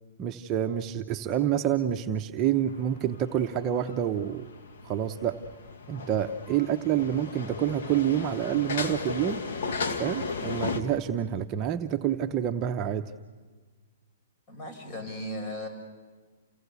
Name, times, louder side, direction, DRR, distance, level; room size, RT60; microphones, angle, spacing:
voice 1, 0.2-4.5 4.8-5.4 5.9-9.4 10.0-13.1, right 10 dB, 30° right, 5 dB, 0.8 m, -28 dB
sound 1, 2.7-10.8, left 4 dB, 65° left, 1.9 m, -36 dB
voice 2, 14.5-15.7, left 1 dB, 35° left, 5 dB, 5.5 m, -36 dB
29.0 x 17.5 x 8.3 m, 1.4 s
hypercardioid pair, 140°, 0 cm